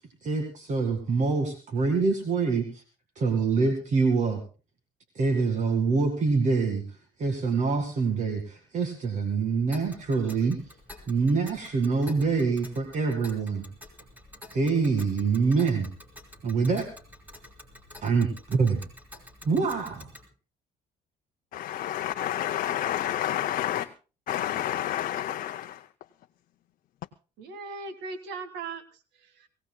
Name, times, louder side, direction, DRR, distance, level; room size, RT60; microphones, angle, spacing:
voice 1, 0.2-2.8 3.2-4.4 5.2-6.8 7.2-10.6 11.1-13.6 14.5-15.9 16.4-16.9 18.0-18.8 19.4-20.1, right 4 dB, 45° right, 4 dB, 2.1 m, -25 dB
Tick, 9.7-20.3, left 1 dB, 10° right, 3.7 m, -49 dB
voice 2, 21.5-23.9 24.3-25.8, left 12 dB, 55° left, 7 dB, 0.6 m, -29 dB
voice 3, 27.4-29.5, right 4 dB, 85° right, 10 dB, 1.9 m, -39 dB
23.5 x 16.5 x 2.3 m, 0.34 s
cardioid pair, 110°, 17 cm